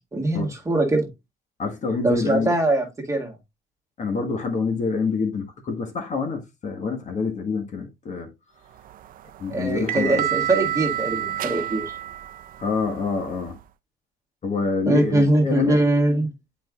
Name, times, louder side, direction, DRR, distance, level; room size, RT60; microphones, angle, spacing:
voice 1, 0.1-1.1 2.0-3.4 9.5-11.9 14.9-16.3, right 2 dB, 20° right, 1.9 m, -22 dB
voice 2, 1.6-2.5 4.0-8.3 9.4-10.2 12.6-13.6 14.4-15.8, left 4 dB, 45° left, 1.5 m, -26 dB
sound 1, 8.8-13.6, right 11 dB, 55° right, 0.5 m, -30 dB
7.7 x 5.0 x 2.4 m
cardioid pair, 110°, 17 cm